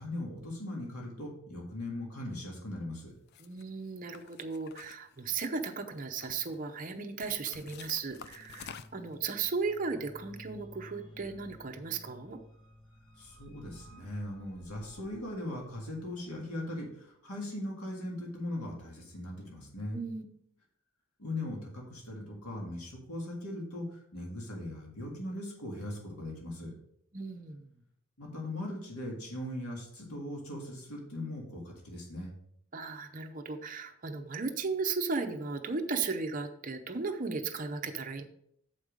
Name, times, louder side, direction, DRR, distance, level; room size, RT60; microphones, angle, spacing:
voice 1, 0.0-3.1 13.2-20.0 21.2-26.7 28.2-32.3, left 1 dB, 85° left, -1 dB, 2.0 m, -39 dB
sound 1, 3.3-3.6 4.1-5.6 6.0-6.6 7.2-9.1, left 7 dB, 45° left, 0.3 m, -49 dB
voice 2, 3.4-12.4 19.9-20.2 27.1-27.7 32.7-38.2, right 4 dB, 35° right, 4 dB, 0.7 m, -36 dB
sound 2, 8.1-16.4, left 1 dB, 25° left, 1.3 m, -55 dB
7.2 x 5.3 x 5.1 m, 0.71 s
head